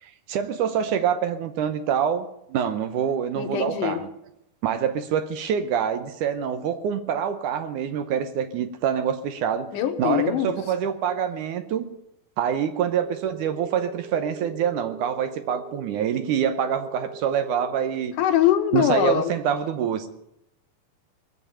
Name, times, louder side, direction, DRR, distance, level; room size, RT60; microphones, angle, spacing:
voice 1, 0.0-4.1 4.6-9.7 10.0-11.9 12.4-18.1 18.7-20.1, right 8 dB, 75° right, 10 dB, 2.1 m, -26 dB
voice 2, 3.4-4.0 9.7-10.6 18.2-19.3, left 10 dB, 75° left, 7 dB, 2.3 m, -22 dB
Telephone, 13.0-18.0, right 8 dB, 50° right, 2.6 m, -42 dB
20.0 x 7.2 x 9.9 m, 0.81 s
omnidirectional pair, 4.1 m